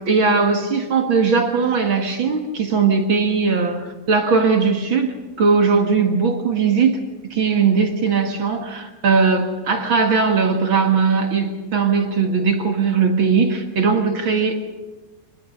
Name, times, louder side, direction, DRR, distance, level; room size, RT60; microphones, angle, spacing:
voice 1, 0.1-7.0 7.3-14.5, right 5 dB, 45° right, 4 dB, 1.6 m, -19 dB
26.0 x 20.0 x 6.6 m, 1.2 s
omnidirectional pair, 4.7 m